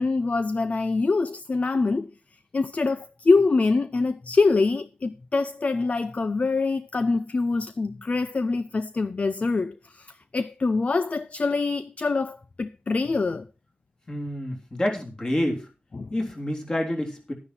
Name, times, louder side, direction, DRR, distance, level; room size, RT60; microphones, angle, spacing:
voice 1, 0.0-2.1 2.5-13.5 15.9-16.1, left 3 dB, 45° left, 0.5 m, -24 dB
voice 2, 14.1-15.7 16.1-17.3, left 1 dB, 30° left, 3.4 m, -28 dB
11.5 x 9.9 x 4.3 m
wide cardioid pair, 120°, 3 cm